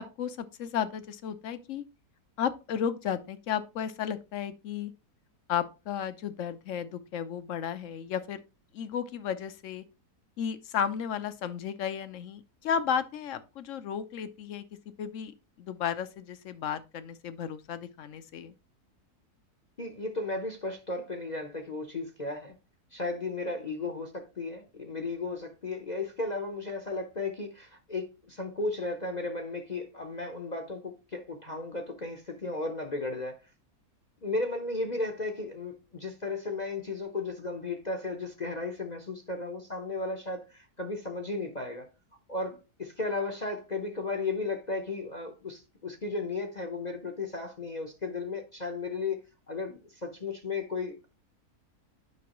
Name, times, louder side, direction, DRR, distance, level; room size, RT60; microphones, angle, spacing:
voice 1, 0.0-1.8 2.4-4.9 5.5-8.4 8.7-9.8 10.4-14.6 15.0-18.5, left 8 dB, 60° left, 1.0 m, -33 dB
voice 2, 19.8-22.6 22.9-33.4 34.2-41.9 42.3-49.2 49.5-51.1, left 3 dB, 35° left, 0.8 m, -35 dB
9.3 x 5.6 x 3.0 m
omnidirectional pair, 1.7 m